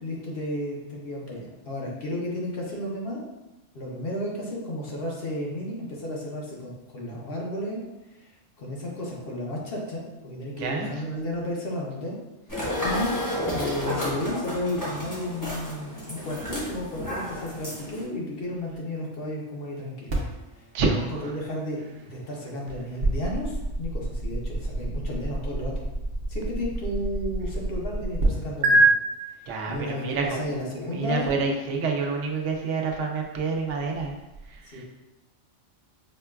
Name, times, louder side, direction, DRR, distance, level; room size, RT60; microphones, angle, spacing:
voice 1, 0.0-3.2 3.7-7.8 8.2-8.3 8.6-12.2 12.8-13.2 13.5-20.1 20.8-25.8 26.3-28.9 29.7-31.3 34.7-34.8, left 1 dB, 60° left, -3 dB, 0.9 m, -33 dB
voice 2, 10.6-10.9 20.7-21.3 29.5-30.5 30.9-34.1 34.5-34.8, right 4 dB, 90° right, 1 dB, 0.9 m, -28 dB
sound 1, 12.5-18.0, left 1 dB, 20° left, 0.8 m, -31 dB
sound 2, 20.1-28.3 28.6-28.8, right 1 dB, 60° right, 0.8 m, -29 dB
5.1 x 2.2 x 2.3 m, 1.0 s
omnidirectional pair, 1.2 m